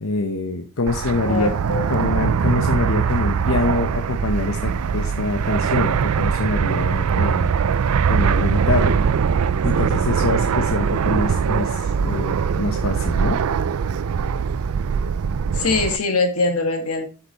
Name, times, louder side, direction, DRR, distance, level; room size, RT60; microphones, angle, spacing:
voice 1, 0.0-1.5 1.9-7.5 8.1-9.0 9.6-13.4, left 3 dB, 65° left, 4 dB, 0.9 m, -25 dB
Fixed-wing aircraft airplane, 0.9-16.0, right 6 dB, 80° right, 0.4 m, -21 dB
voice 2, 1.2-1.9 15.5-17.1, left 3 dB, 90° left, 5 dB, 1.8 m, -22 dB
8.0 x 5.8 x 3.0 m, 0.34 s
head